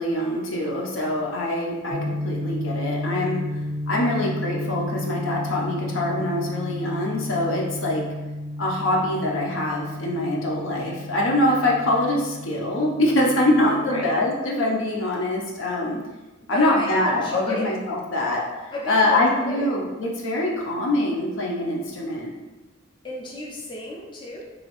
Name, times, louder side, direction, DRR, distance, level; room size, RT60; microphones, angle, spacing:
voice 1, 0.0-3.4 3.9-8.0 8.6-16.0 16.5-22.3, left 1 dB, 75° left, -2 dB, 0.7 m, -24 dB
sound 1, 1.9-14.2, left 1 dB, 40° right, 0.5 m, -32 dB
voice 2, 13.7-14.2 16.5-17.8 18.7-19.7 23.0-24.5, left 1 dB, 25° left, -4 dB, 0.5 m, -32 dB
3.0 x 2.7 x 2.9 m, 1.1 s
head